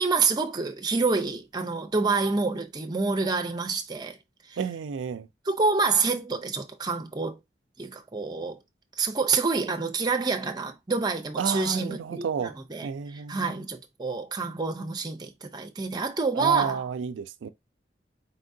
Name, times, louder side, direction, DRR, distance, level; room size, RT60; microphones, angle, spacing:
voice 1, 0.0-4.2 4.5-4.6 5.5-7.4 7.8-8.6 9.0-12.9 13.1-16.8, right 4 dB, 25° right, 0.6 m, -27 dB
voice 2, 4.6-5.3 11.4-12.6 12.8-13.6 16.3-17.5, right 6 dB, 90° right, 0.4 m, -31 dB
4.1 x 3.7 x 2.6 m
head